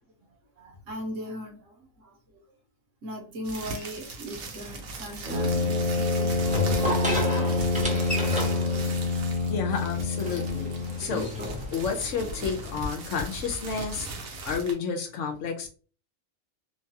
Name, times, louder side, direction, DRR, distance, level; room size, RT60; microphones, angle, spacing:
voice 1, 0.6-2.4 3.0-8.9 14.4-14.5, equal, 65° right, 2 dB, 1.2 m, -40 dB
sound 1, 3.4-14.7, right 2 dB, 85° right, 1.2 m, -38 dB
sound 2, 4.3-12.9, left 1 dB, 5° right, 0.6 m, -34 dB
Brass instrument, 5.2-11.1, left 3 dB, 40° right, 0.8 m, -27 dB
voice 2, 9.5-10.7 11.0-11.3 11.7-15.7, left 5 dB, 70° left, 3 dB, 0.9 m, -31 dB
3.0 x 2.2 x 2.7 m, 0.37 s
omnidirectional pair, 1.4 m